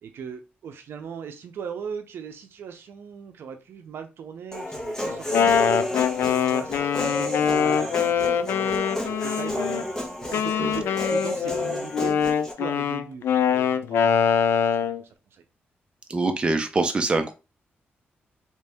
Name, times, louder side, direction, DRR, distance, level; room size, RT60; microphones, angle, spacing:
voice 1, 0.0-5.8 6.1-9.9 10.2-14.1 14.5-15.4, right 7 dB, 75° right, 6 dB, 0.5 m, -39 dB
Human voice, 4.5-12.5, left 1 dB, 15° left, 1.0 m, -31 dB
Wind instrument woodwind instrument, 5.1-9.8 10.3-15.0, left 7 dB, 85° left, 0.3 m, -23 dB
voice 2, 16.1-17.3, right 3 dB, 25° right, 6 dB, 0.6 m, -24 dB
3.0 x 2.7 x 3.4 m, 0.29 s
wide cardioid pair, 135°, 4 cm